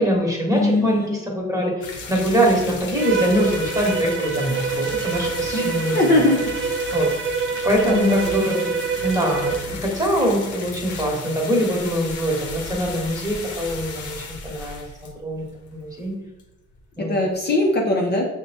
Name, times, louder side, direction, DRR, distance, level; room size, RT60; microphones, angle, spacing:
voice 1, 0.0-6.2 6.9-7.1 7.6-8.7 9.0-14.1 14.4-15.5 15.7-16.1 17.0-17.3, equal, 10° right, -2 dB, 1.2 m, -23 dB
voice 2, 0.5-1.1 5.5-6.9 7.8-8.1 17.1-18.2, left 2 dB, 35° left, -1 dB, 0.6 m, -21 dB
sound 1, 1.8-16.1 16.4-16.5 16.7-16.8 17.3-17.4, left 3 dB, 75° left, 0.8 m, -35 dB
Bowed string instrument, 3.0-9.7, right 6 dB, 40° right, 0.5 m, -26 dB
6.1 x 2.2 x 2.7 m, 0.99 s
cardioid pair, 90°, 30 cm